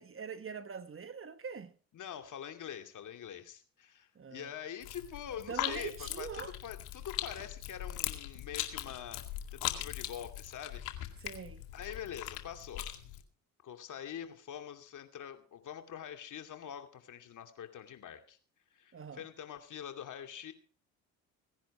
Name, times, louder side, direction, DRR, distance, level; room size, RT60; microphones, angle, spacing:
voice 1, 0.0-1.7 4.1-4.5 5.5-6.5 11.2-11.6 18.9-19.3, right 6 dB, 35° right, 1.5 m, -43 dB
voice 2, 1.9-9.2 9.5-11.2 11.7-13.0 13.6-18.4 18.7-20.5, left 9 dB, 55° left, 2.5 m, -45 dB
sound 1, 4.8-13.2, left 13 dB, 75° left, 2.2 m, -40 dB
17.5 x 10.5 x 4.9 m
hypercardioid pair, 60°, 37 cm